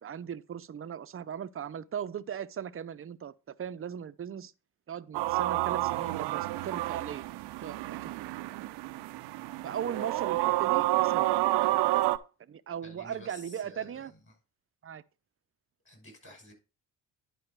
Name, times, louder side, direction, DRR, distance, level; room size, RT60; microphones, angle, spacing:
voice 1, 0.0-4.5 4.9-7.3 7.6-8.3 9.6-11.3 12.5-14.1 14.8-15.0, right 8 dB, 35° right, 0.6 m, -38 dB
sound 1, 5.1-12.2, right 17 dB, 85° right, 0.7 m, -29 dB
voice 2, 12.8-14.4 15.8-16.5, left 1 dB, 30° left, 5.9 m, -51 dB
10.5 x 5.2 x 4.6 m
cardioid pair, 85°, 40 cm